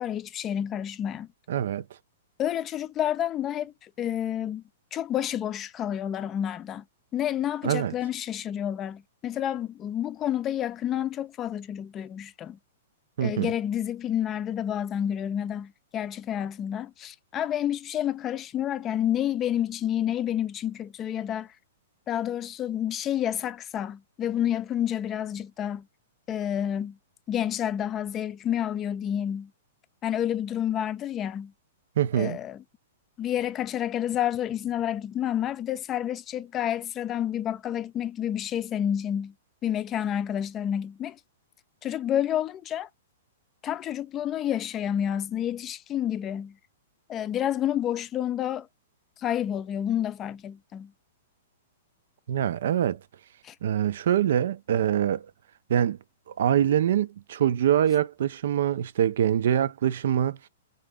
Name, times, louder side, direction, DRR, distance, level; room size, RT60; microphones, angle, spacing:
voice 1, 0.0-1.3 2.4-4.6 4.9-6.8 7.1-12.6 13.2-21.5 22.1-25.9 26.3-27.0 27.3-29.5 30.0-31.5 32.1-32.6 33.2-39.3 39.6-41.2 41.8-42.9 43.6-46.6 47.1-48.7 49.2-50.9 53.4-53.5, left 10 dB, 25° left, 0.5 m, -29 dB
voice 2, 1.5-1.8 7.6-7.9 13.2-13.5 32.0-32.4 52.3-53.0 53.6-55.3 55.7-56.0 56.4-60.4, right 10 dB, 70° right, 0.4 m, -24 dB
3.8 x 3.3 x 3.5 m
hypercardioid pair, 135°, 0 cm